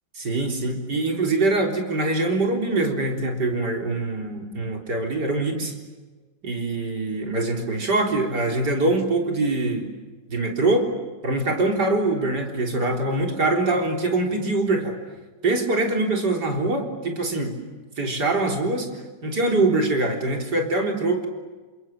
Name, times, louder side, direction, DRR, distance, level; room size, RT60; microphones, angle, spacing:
voice 1, 0.2-5.7 6.4-9.9 10.3-10.9 11.2-15.0 15.4-17.6 18.0-18.9 19.2-21.3, right 2 dB, 65° right, 2 dB, 4.4 m, -23 dB
30.0 x 26.5 x 7.4 m, 1.3 s
omnidirectional pair, 2.0 m